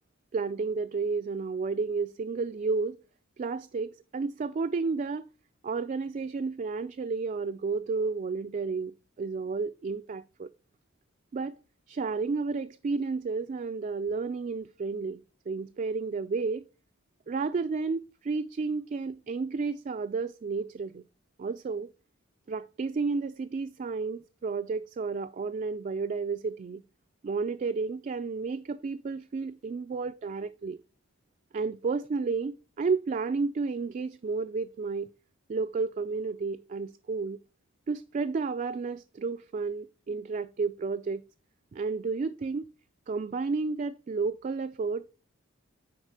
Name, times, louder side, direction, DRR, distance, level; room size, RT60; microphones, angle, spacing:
voice 1, 0.3-3.0 3.4-5.3 5.6-10.5 11.3-11.6 11.9-15.2 15.5-16.7 17.3-21.0 21.4-21.9 22.5-26.8 27.2-30.8 31.5-35.1 35.5-37.4 37.9-41.2 41.7-42.7 43.1-45.1, right 4 dB, 40° right, 0.3 m, -31 dB
9.8 x 4.1 x 4.7 m
head